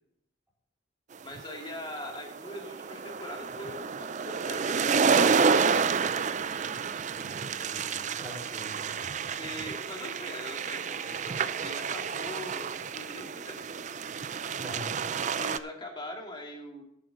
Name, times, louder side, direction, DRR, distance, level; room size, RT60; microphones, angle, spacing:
voice 1, 1.2-5.2 9.4-13.6 15.2-16.8, left 1 dB, 25° left, 2 dB, 2.1 m, -42 dB
sound 1, 1.3-15.6, right 5 dB, 35° right, 0.4 m, -29 dB
voice 2, 7.7-9.3 14.6-15.0, equal, 10° right, -4 dB, 4.2 m, -44 dB
11.5 x 10.0 x 3.9 m, 0.79 s
head